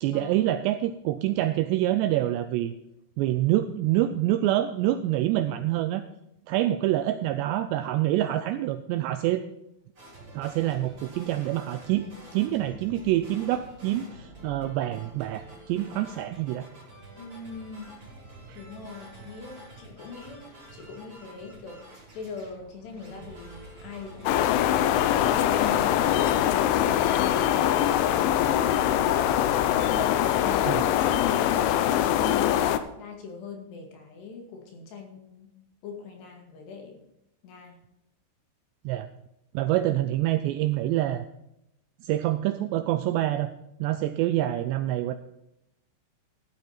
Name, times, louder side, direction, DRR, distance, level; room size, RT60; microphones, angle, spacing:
voice 1, 0.0-2.7 3.2-6.0 6.5-9.4 10.3-12.1 12.3-16.7 18.5-18.6 30.7-30.8 38.9-39.1 39.5-41.3 42.0-43.5 43.8-45.2, right 14 dB, 90° right, 10 dB, 2.5 m, -26 dB
sound 1, 10.0-26.0, right 1 dB, 25° right, 7.8 m, -48 dB
voice 2, 17.1-18.0 18.5-24.6 25.3-28.0 29.9-35.5 35.8-37.0 37.4-37.8, left 5 dB, 65° left, 2 dB, 4.1 m, -42 dB
sound 2, 24.3-32.8, left 11 dB, 85° left, 3.2 m, -23 dB
15.0 x 12.0 x 4.4 m, 0.83 s
omnidirectional pair, 5.6 m